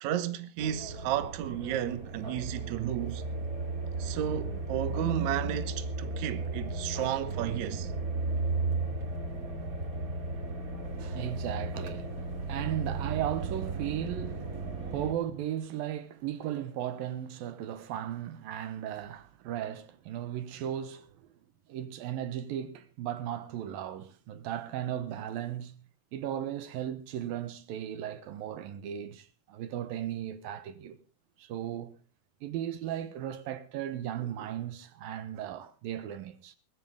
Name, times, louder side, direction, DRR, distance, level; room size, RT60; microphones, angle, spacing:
voice 1, 0.0-3.3 4.0-7.9, right 11 dB, 65° right, 2.2 m, -33 dB
sound 1, 0.6-15.1, right 3 dB, 25° right, 2.4 m, -35 dB
voice 2, 11.0-12.2 12.5-21.3 21.7-25.8 26.1-31.0 31.4-32.0 32.4-36.6, right 11 dB, 80° right, 2.9 m, -36 dB
19.5 x 15.5 x 3.6 m
omnidirectional pair, 4.2 m